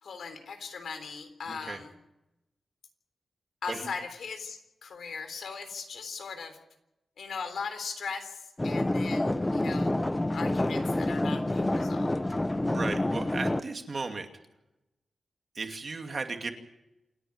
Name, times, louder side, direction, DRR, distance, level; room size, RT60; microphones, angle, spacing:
voice 1, 0.0-1.9 3.6-6.6 7.2-9.9 10.3-12.2, left 5 dB, 80° left, 8 dB, 3.6 m, -39 dB
voice 2, 1.5-1.8 3.7-3.9 12.6-14.3 15.5-16.5, right 3 dB, 40° right, 5 dB, 2.5 m, -35 dB
sound 1, 8.6-13.6, left 1 dB, 15° left, 0.7 m, -28 dB
28.5 x 10.0 x 9.6 m, 0.90 s
wide cardioid pair, 130°, 0 cm